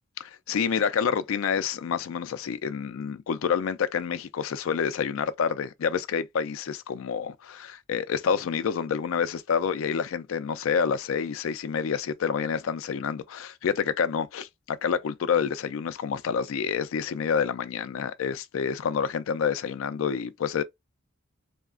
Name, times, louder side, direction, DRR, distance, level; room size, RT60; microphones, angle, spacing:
voice 1, 0.2-20.6, left 6 dB, 75° left, 0.4 m, -28 dB
2.8 x 2.4 x 2.3 m
head